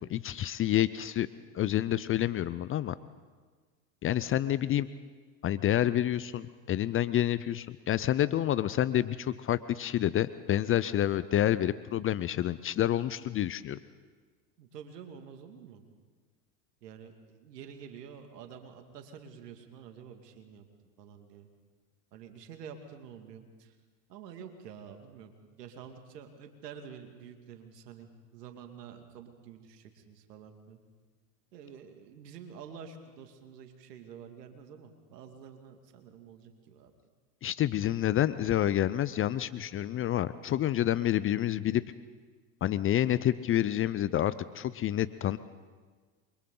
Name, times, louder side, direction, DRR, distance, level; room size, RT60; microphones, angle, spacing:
voice 1, 0.1-1.3 1.5-3.0 4.0-4.9 5.4-13.8 37.4-41.8 42.6-45.4, left 12 dB, 30° left, 16 dB, 0.5 m, -28 dB
voice 2, 14.6-15.8 16.8-20.7 21.0-21.5 22.1-23.8 24.1-25.3 25.6-30.8 31.5-36.9, right 7 dB, 80° right, 5 dB, 2.4 m, -48 dB
28.5 x 23.5 x 3.9 m, 1.4 s
hypercardioid pair, 85°, 48 cm